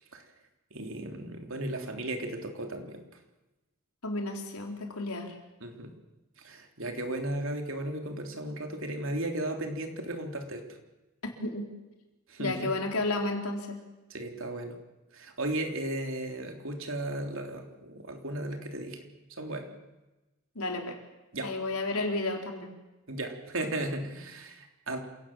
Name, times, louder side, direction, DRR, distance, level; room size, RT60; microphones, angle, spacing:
voice 1, 0.7-3.0 5.6-5.9 6.4-10.6 12.3-12.7 14.1-14.8 15.1-19.0 19.4-19.7 21.3-21.5 23.1-25.0, right 1 dB, 60° right, 4 dB, 3.5 m, -35 dB
voice 2, 4.0-5.4 11.4-11.7 12.4-13.8 20.5-21.0 21.4-22.7, left 2 dB, 80° left, 2 dB, 4.3 m, -32 dB
28.0 x 18.0 x 7.4 m, 1.1 s
head